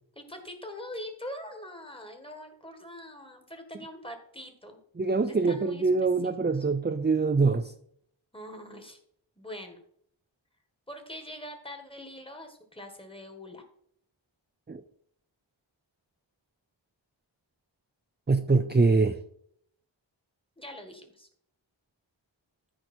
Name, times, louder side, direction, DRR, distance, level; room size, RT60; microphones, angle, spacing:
voice 1, 0.2-4.8 5.3-5.9 6.5-6.7 8.3-9.0 9.4-9.8 10.9-13.6 20.6-21.3, left 1 dB, 10° left, 5 dB, 1.8 m, -43 dB
voice 2, 5.0-7.7 14.7-14.8 18.3-19.2, right 4 dB, 20° right, 8 dB, 0.6 m, -24 dB
13.5 x 5.2 x 4.5 m, 0.67 s
wide cardioid pair, 50°, 47 cm